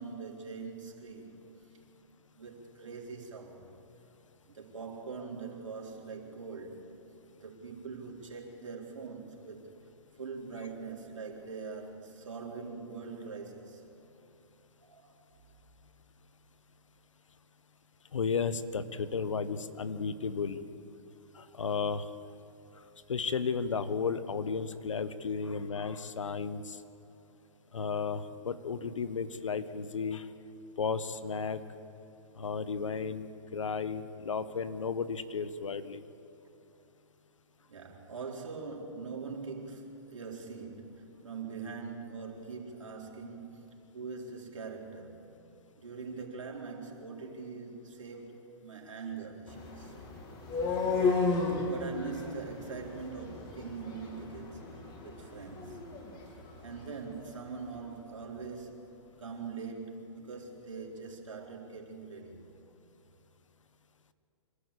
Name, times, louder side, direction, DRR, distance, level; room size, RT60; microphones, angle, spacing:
voice 1, 0.0-1.4 2.3-3.8 4.5-6.9 7.4-9.7 10.2-13.8 14.8-15.1 37.7-45.2 45.8-49.9 51.6-56.0 56.6-62.5, right 4 dB, 80° right, -1 dB, 4.2 m, -43 dB
voice 2, 18.1-20.6 21.3-22.1 23.1-26.8 27.7-30.3 30.8-31.6 32.4-36.0, left 5 dB, 80° left, 13 dB, 1.2 m, -34 dB
sound 1, 49.5-57.4, left 4 dB, 30° left, 3.2 m, -34 dB
25.0 x 13.5 x 8.5 m, 2.9 s
hypercardioid pair, 130°, 16 cm